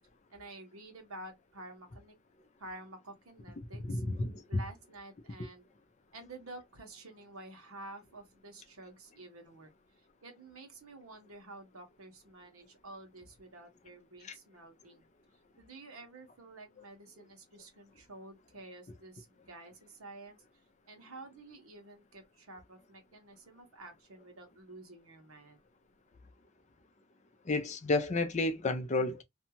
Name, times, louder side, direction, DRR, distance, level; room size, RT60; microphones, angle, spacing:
voice 1, 0.3-2.1 2.6-4.0 4.5-5.7 6.1-15.1 15.6-20.4 20.9-25.6, right 2 dB, 80° right, 1.1 m, -50 dB
voice 2, 3.8-4.6 14.2-14.3 27.5-29.2, left 2 dB, 35° left, 0.5 m, -31 dB
2.7 x 2.3 x 2.8 m
head